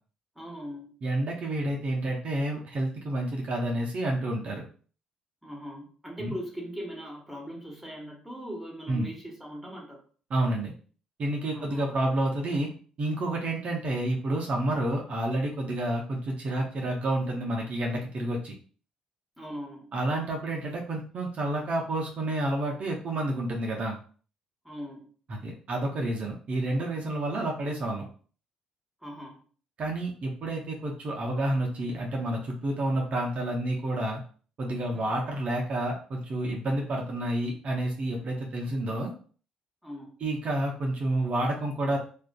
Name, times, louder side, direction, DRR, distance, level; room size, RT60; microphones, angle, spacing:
voice 1, 0.4-0.9 5.4-10.0 11.5-12.0 19.4-19.9 24.6-25.1 29.0-29.4 34.9-35.2 39.8-40.2, equal, ahead, -2 dB, 1.1 m, -40 dB
voice 2, 1.0-4.6 6.2-6.4 8.9-9.1 10.3-10.7 11.2-12.7 13.0-18.5 19.9-24.0 25.3-28.0 29.8-34.2 34.6-39.1 40.2-42.0, right 1 dB, 55° right, 0 dB, 0.6 m, -29 dB
2.4 x 2.4 x 2.2 m, 0.42 s
hypercardioid pair, 60°, 3 cm